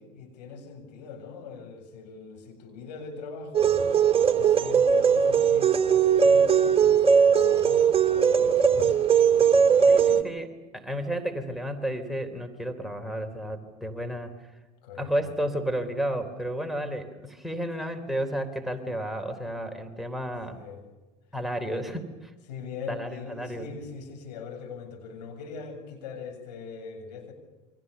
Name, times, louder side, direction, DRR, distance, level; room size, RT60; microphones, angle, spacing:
voice 1, 0.0-3.8 4.3-10.2 14.8-15.1 20.5-20.8 21.7-21.9 22.5-27.3, left 5 dB, 75° left, 3 dB, 7.5 m, -41 dB
sound 1, 3.5-10.2, right 7 dB, 25° right, 2.7 m, -20 dB
voice 2, 9.9-10.5 10.7-14.5 15.0-20.6 21.3-22.1 22.9-23.7, right 1 dB, ahead, 4 dB, 3.7 m, -32 dB
28.5 x 24.5 x 7.0 m, 1.2 s
hypercardioid pair, 75°, 21 cm